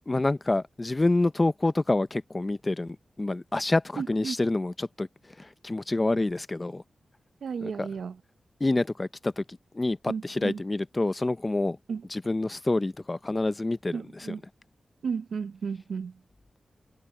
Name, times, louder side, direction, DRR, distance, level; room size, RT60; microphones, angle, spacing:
voice 1, 0.1-5.1 5.4-6.8 7.6-7.9 8.6-9.4 9.7-11.8 12.1-14.4, left 2 dB, 20° left, 0.5 m, -27 dB
voice 2, 4.0-4.4 7.4-8.2 10.1-10.6 11.9-12.1 13.9-14.4 15.0-16.1, right 6 dB, 80° right, 0.7 m, -33 dB
wide cardioid pair, 145°, 0 cm